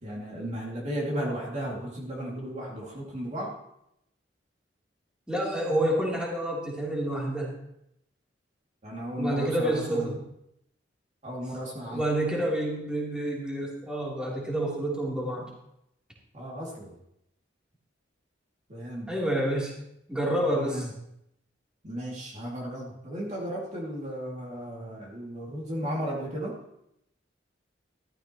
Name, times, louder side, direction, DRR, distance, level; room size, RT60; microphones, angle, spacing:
voice 1, 0.0-3.5 8.8-10.1 11.2-12.0 16.3-16.9 18.7-19.1 20.5-20.9 21.8-26.6, equal, 40° right, -3 dB, 2.4 m, -34 dB
voice 2, 5.3-7.5 9.2-10.2 11.9-15.5 19.1-19.8 20.1-20.9, right 1 dB, 5° right, -5 dB, 3.2 m, -28 dB
14.0 x 13.5 x 3.0 m, 0.81 s
head